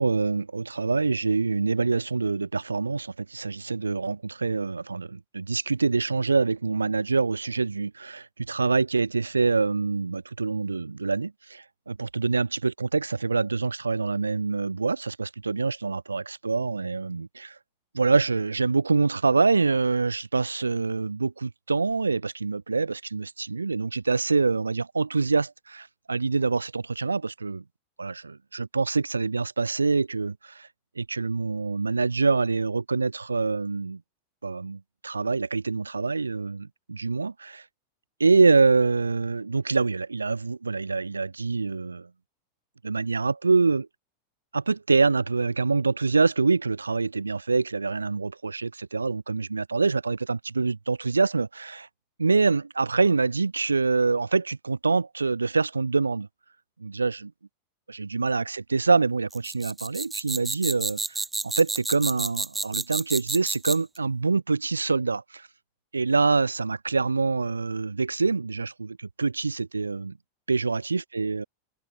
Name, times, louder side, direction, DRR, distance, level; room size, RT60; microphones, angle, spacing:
voice 1, 0.0-17.5 17.9-27.6 28.0-30.7 31.0-34.0 34.4-37.6 38.2-42.1 42.8-43.9 44.5-51.9 52.2-56.3 56.8-57.3 57.9-65.5 65.9-70.2 70.5-71.4, right 4 dB, 80° right, 3.7 m, -25 dB
sound 1, 59.3-64.0, right 3 dB, 10° right, 2.3 m, -30 dB
figure-of-eight pair, 90°, 0 cm